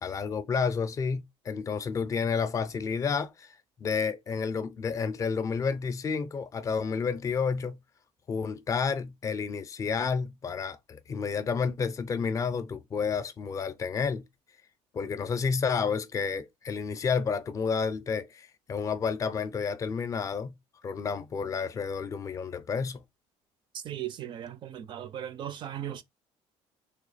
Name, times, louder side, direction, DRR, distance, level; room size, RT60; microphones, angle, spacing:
voice 1, 0.0-3.5 3.8-7.8 8.3-14.2 14.9-20.5 20.8-23.0, left 5 dB, 25° left, 0.5 m, -30 dB
voice 2, 23.8-26.0, right 11 dB, 40° right, 0.4 m, -37 dB
3.3 x 2.7 x 4.0 m
cardioid pair, 145°, 12 cm